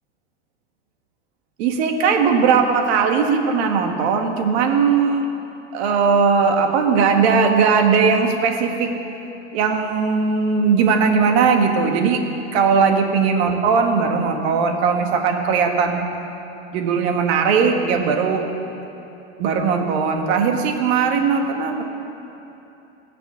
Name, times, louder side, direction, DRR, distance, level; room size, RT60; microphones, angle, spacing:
voice 1, 1.6-5.3 5.7-8.9 9.5-12.2 12.5-16.0 16.7-18.5 19.4-21.8, right 5 dB, 65° right, 4 dB, 1.7 m, -18 dB
17.5 x 6.0 x 8.4 m, 2.9 s
supercardioid pair, 130°, 34 cm